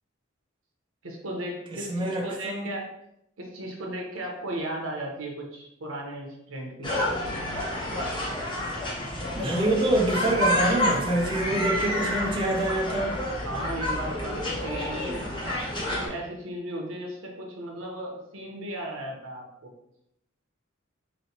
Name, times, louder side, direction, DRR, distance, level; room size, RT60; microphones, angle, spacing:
voice 1, 1.0-2.9 3.4-6.9 13.4-15.3 15.9-19.7, right 1 dB, 85° right, 0 dB, 0.9 m, -36 dB
voice 2, 1.7-2.7 9.3-13.2, right 1 dB, 25° right, -1 dB, 0.5 m, -26 dB
sound 1, 6.8-16.1, left 1 dB, 25° left, 0.9 m, -29 dB
3.8 x 3.1 x 2.8 m, 0.79 s
head